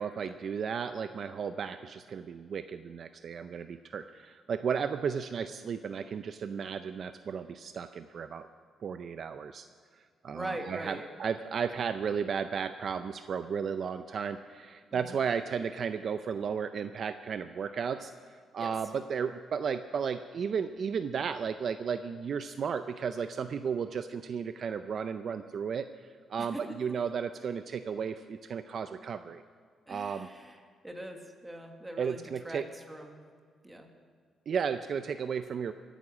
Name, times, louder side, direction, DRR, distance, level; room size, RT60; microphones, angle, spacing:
voice 1, 0.0-8.5 8.8-9.7 9.9-29.4 29.9-30.3 32.0-32.7 34.5-35.7, right 6 dB, 45° right, 10 dB, 0.5 m, -34 dB
voice 2, 10.3-11.1 14.9-15.2 18.6-18.7 26.4-26.6 29.9-30.6 30.8-32.6 32.9-33.2 33.6-33.9, right 1 dB, 10° right, 3 dB, 1.6 m, -42 dB
23.5 x 9.2 x 6.2 m, 2.1 s
cardioid pair, 155°, 0 cm